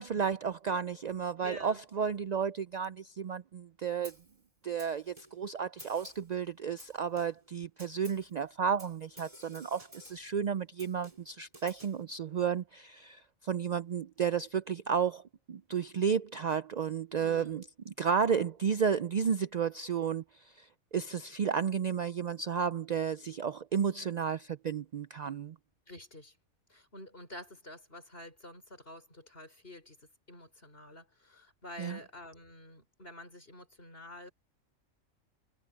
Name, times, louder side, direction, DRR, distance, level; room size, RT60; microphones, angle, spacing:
voice 1, 0.0-4.1 4.6-15.2 15.5-20.2 20.6-25.5 31.8-32.0, right 7 dB, 75° right, 0.3 m, -32 dB
voice 2, 1.4-1.8 17.2-17.7 25.9-26.3 26.7-34.3, left 1 dB, 45° left, 6.3 m, -49 dB
Snare drum, 4.0-4.4 4.8-5.5 5.8-6.3 6.8-7.5 7.8-8.3 8.8-10.3 10.8-12.0, right 1 dB, 25° right, 3.9 m, -53 dB
omnidirectional pair, 1.3 m